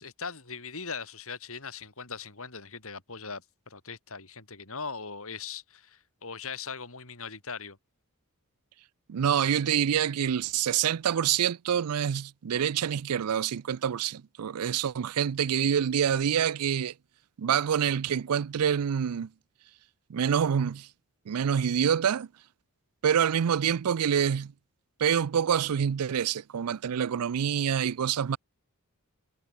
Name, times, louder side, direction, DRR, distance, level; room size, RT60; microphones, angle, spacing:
voice 1, 0.0-7.8, left 5 dB, 65° left, 4.9 m, -40 dB
voice 2, 9.1-16.9 17.4-19.3 20.1-20.9 21.3-22.3 23.0-24.5 25.0-28.4, right 8 dB, 80° right, 0.4 m, -26 dB
head